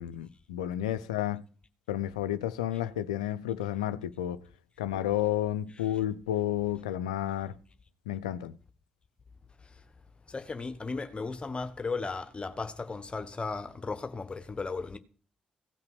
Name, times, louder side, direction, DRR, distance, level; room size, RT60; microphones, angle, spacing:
voice 1, 0.0-1.4 1.9-4.4 4.8-7.6 8.1-8.5, left 12 dB, 80° left, 0.5 m, -31 dB
voice 2, 10.3-15.0, left 4 dB, 30° left, 1.3 m, -35 dB
16.5 x 5.7 x 7.7 m
figure-of-eight pair, 40°, 4 cm